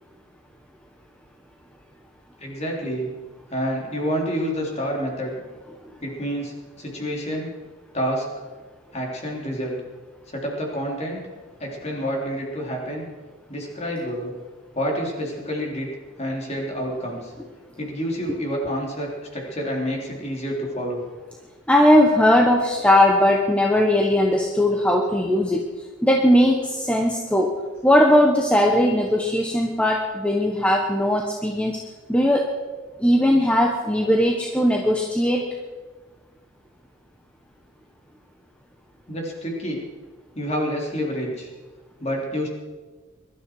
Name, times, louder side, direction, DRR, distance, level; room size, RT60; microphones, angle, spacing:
voice 1, 2.4-3.1 3.5-5.3 6.0-7.5 7.9-8.3 8.9-9.8 10.3-11.2 11.6-13.1 13.5-14.3 14.7-15.9 16.2-17.3 17.8-21.0 39.1-39.8 40.4-41.5 42.0-42.5, equal, 30° left, -1 dB, 3.6 m, -28 dB
voice 2, 21.7-25.6 26.0-27.5 27.8-31.8 32.1-32.5 33.0-35.5, left 1 dB, 5° left, 1 dB, 1.1 m, -19 dB
22.0 x 12.5 x 4.8 m, 1.3 s
head